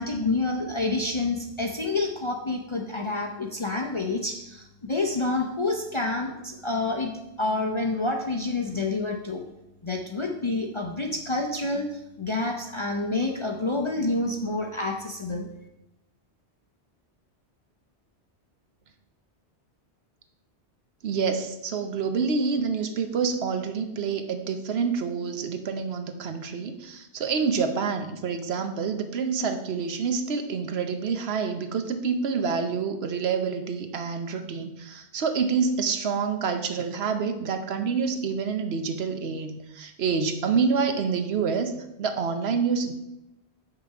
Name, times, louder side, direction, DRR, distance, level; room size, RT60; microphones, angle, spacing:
voice 1, 0.0-7.1 7.4-9.4 9.8-15.5, left 2 dB, 35° left, 2 dB, 0.5 m, -28 dB
voice 2, 21.0-42.9, right 5 dB, 70° right, 7 dB, 1.0 m, -27 dB
6.7 x 5.8 x 4.7 m, 0.89 s
omnidirectional pair, 1.1 m